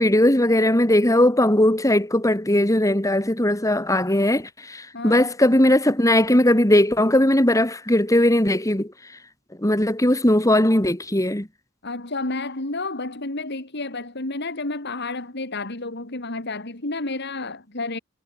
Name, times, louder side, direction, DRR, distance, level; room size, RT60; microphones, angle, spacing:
voice 1, 0.0-8.9 9.6-11.5, left 1 dB, 15° left, 3.3 m, -19 dB
voice 2, 4.9-5.3 11.8-18.0, left 2 dB, 55° left, 3.4 m, -30 dB
head